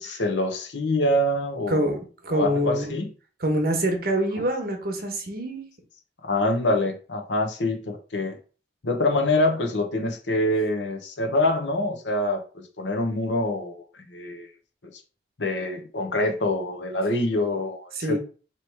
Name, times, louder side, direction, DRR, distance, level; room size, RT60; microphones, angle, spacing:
voice 1, 0.0-2.0 2.3-3.1 6.2-8.4 8.8-14.5 15.4-18.2, left 1 dB, 90° left, 0.9 m, -25 dB
voice 2, 2.2-3.0 3.4-5.6 18.0-18.2, right 1 dB, 55° right, 1.0 m, -25 dB
3.1 x 3.0 x 4.5 m
head